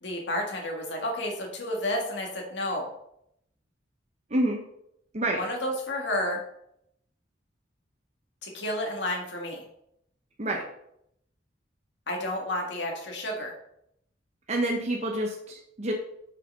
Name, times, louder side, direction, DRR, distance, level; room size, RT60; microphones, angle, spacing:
voice 1, 0.0-2.9 5.3-6.4 8.4-9.6 12.1-13.5, left 1 dB, 70° left, 0 dB, 1.8 m, -31 dB
voice 2, 4.3-4.6 5.1-5.4 10.4-10.6 14.5-15.9, right 1 dB, 40° right, 0 dB, 1.0 m, -28 dB
6.8 x 6.6 x 5.4 m, 0.75 s
head